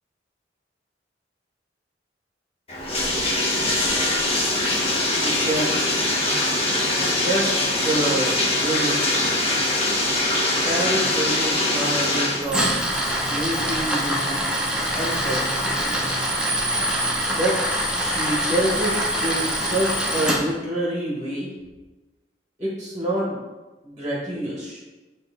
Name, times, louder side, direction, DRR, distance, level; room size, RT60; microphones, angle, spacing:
Bathtub (filling or washing), 2.7-12.5, left 1 dB, 35° left, 1.0 m, -22 dB
voice 1, 5.2-5.9 7.2-9.6 10.6-12.8 13.3-14.4 14.9-16.0 17.3-17.6 17.9-21.5 22.6-23.4 23.8-24.8, right 1 dB, 20° right, -5 dB, 1.3 m, -27 dB
Tools, 12.4-20.4, equal, 5° right, 0.9 m, -24 dB
8.8 x 3.1 x 3.6 m, 1.2 s
head